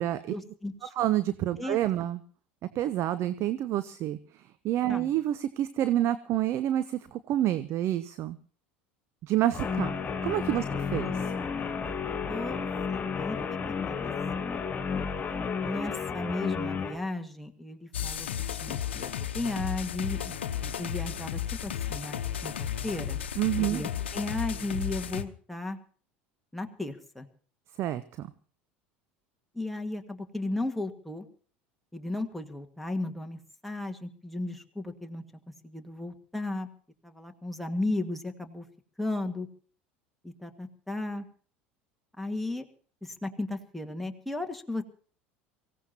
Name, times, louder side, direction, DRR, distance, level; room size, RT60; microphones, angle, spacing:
voice 1, 0.3-0.9 1.6-1.8 4.9-5.1 10.6-10.8 11.5-11.7 12.3-14.1 14.4-14.5 15.6-18.3 18.6-23.2 23.6-25.8 26.5-27.3 29.5-31.3 31.9-35.2 35.6-36.7 37.0-38.7 39.0-39.5 40.2-41.2 42.2-42.7 43.0-44.8, left 2 dB, ahead, 4 dB, 1.8 m, -35 dB
voice 2, 1.0-2.2 2.7-4.2 4.6-8.4 9.2-9.9 10.2-11.2 23.4-23.8 27.8-28.3, right 13 dB, 45° right, 13 dB, 0.8 m, -28 dB
Guitar, 9.5-17.0, left 5 dB, 25° left, 3.6 m, -32 dB
sound 1, 17.9-25.2, left 9 dB, 80° left, 0.9 m, -34 dB
24.0 x 16.0 x 2.9 m, 0.43 s
hypercardioid pair, 75°, 6 cm